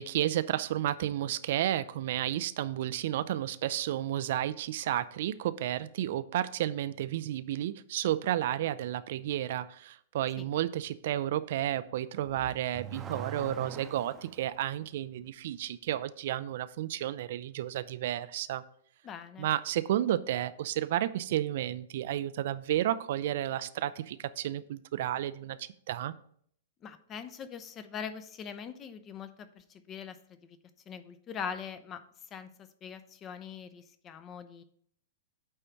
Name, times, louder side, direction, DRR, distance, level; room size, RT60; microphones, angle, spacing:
voice 1, 0.0-18.6 19.4-26.1, right 12 dB, 55° right, 14 dB, 0.3 m, -32 dB
Car / Accelerating revving vroom, 12.2-14.4, right 5 dB, 20° right, 0.7 m, -42 dB
voice 2, 19.0-19.5 26.8-30.6 30.9-32.0 32.3-34.6, left 7 dB, 25° left, 11 dB, 0.6 m, -42 dB
8.8 x 3.3 x 5.8 m, 0.63 s
figure-of-eight pair, 105°, 0 cm